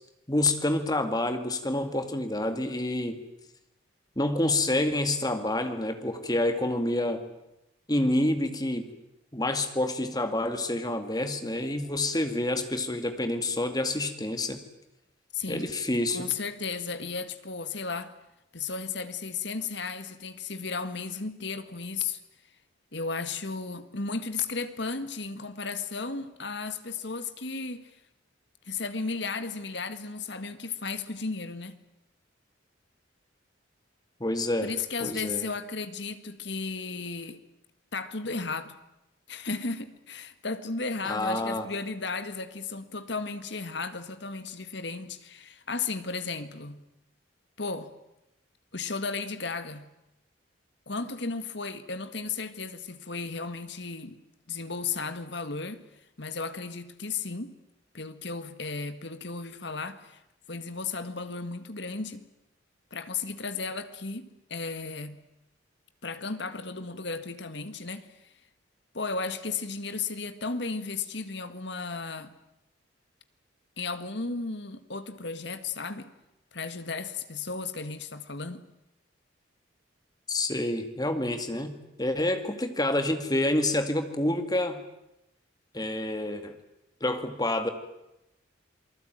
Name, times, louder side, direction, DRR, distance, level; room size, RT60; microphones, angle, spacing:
voice 1, 0.3-3.2 4.2-7.2 7.9-8.9 9.3-14.6 15.5-16.3 34.2-34.7 35.0-35.5 41.0-41.7 80.3-84.8 85.7-86.6 87.0-87.7, left 1 dB, 20° left, 2.1 m, -28 dB
voice 2, 15.3-15.8 16.1-18.1 18.5-22.2 22.9-27.9 28.7-31.8 34.6-37.4 37.9-38.8 39.3-46.8 47.6-47.9 48.7-49.9 50.9-54.2 54.5-55.9 56.2-57.6 57.9-60.2 60.5-62.2 62.9-65.2 66.0-68.3 68.9-72.3 73.8-76.1 76.5-78.7, left 4 dB, 60° left, 1.8 m, -34 dB
28.0 x 20.0 x 9.2 m
head